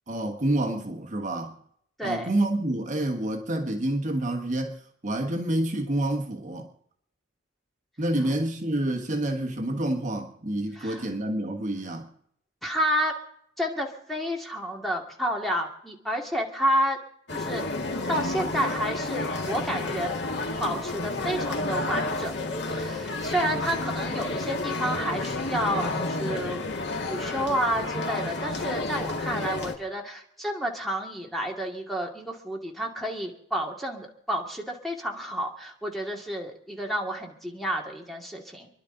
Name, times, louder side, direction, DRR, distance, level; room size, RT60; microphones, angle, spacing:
voice 1, 0.1-1.6 2.0-6.7 8.0-12.1, right 1 dB, 40° right, 1.4 m, -28 dB
voice 2, 2.0-2.3 10.7-11.0 12.6-13.1 13.6-17.0 17.3-17.7 18.1-20.1 20.6-22.3 22.6-26.6 27.1-38.7, equal, ahead, 2.3 m, -30 dB
sound 1, 17.3-29.8, left 2 dB, 65° left, 1.9 m, -30 dB
29.5 x 11.0 x 3.9 m
head